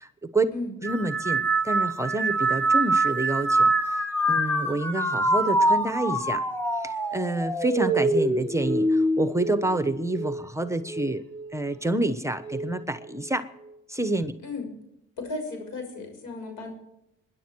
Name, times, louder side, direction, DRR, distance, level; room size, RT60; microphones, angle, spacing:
voice 1, 0.0-0.5 0.8-6.4 6.8-11.2 11.5-13.5 13.9-14.3, right 2 dB, 10° right, 11 dB, 1.1 m, -28 dB
sound 1, 0.8-10.4 10.9-11.5 12.4-12.8, right 2 dB, 5° left, 1.9 m, -25 dB
voice 2, 15.2-16.7, left 3 dB, 85° left, 4 dB, 6.3 m, -34 dB
22.0 x 10.5 x 4.6 m, 0.84 s
cardioid pair, 90°, 30 cm